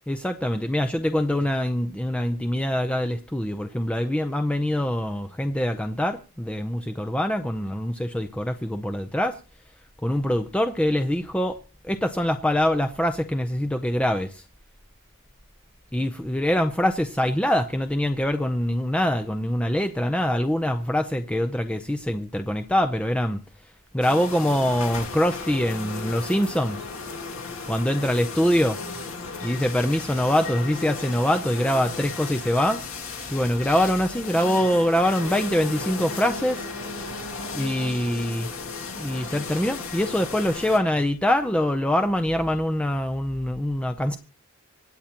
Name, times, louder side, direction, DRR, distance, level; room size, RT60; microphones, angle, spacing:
voice 1, 0.1-9.4 10.0-11.6 11.8-14.4 15.9-23.4 23.9-26.8 27.7-28.8 29.4-32.8 33.3-36.7 37.5-38.5 39.0-44.2, equal, 5° left, 6 dB, 0.5 m, -24 dB
sound 1, 24.0-40.8, left 4 dB, 65° left, 2.3 m, -35 dB
25.5 x 8.8 x 2.9 m, 0.34 s
head